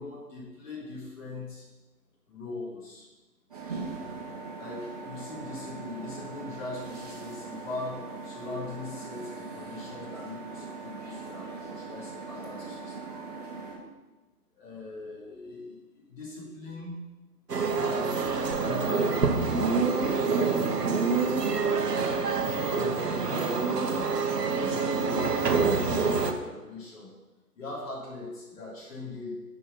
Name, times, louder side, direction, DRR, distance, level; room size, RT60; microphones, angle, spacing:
voice 1, 0.0-1.7 2.3-3.1 4.6-13.2 14.5-17.0 17.7-19.6 22.3-24.0 24.5-27.1 27.5-29.4, left 2 dB, 50° left, -8 dB, 3.7 m, -40 dB
sound 1, 3.5-13.8, right 4 dB, 25° right, 1.5 m, -40 dB
sound 2, 17.5-26.3, right 4 dB, 75° right, 1.3 m, -26 dB
9.8 x 5.5 x 5.8 m, 1.2 s
figure-of-eight pair, 160°, 48 cm